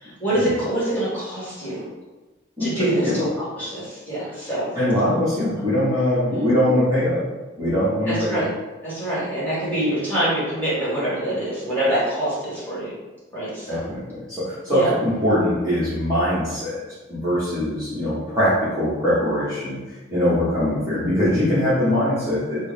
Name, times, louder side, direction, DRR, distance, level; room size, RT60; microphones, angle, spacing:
voice 1, 0.0-1.8 2.6-4.7 6.3-6.4 8.1-8.5 8.8-12.9 13.3-13.8 14.7-14.9, right 1 dB, 10° left, -10 dB, 1.5 m, -25 dB
voice 2, 2.6-3.2 4.7-7.2 7.6-8.4 13.7-16.8 17.1-19.8 20.1-22.7, left 1 dB, 15° right, -12 dB, 0.9 m, -22 dB
4.4 x 2.1 x 3.4 m, 1.2 s
head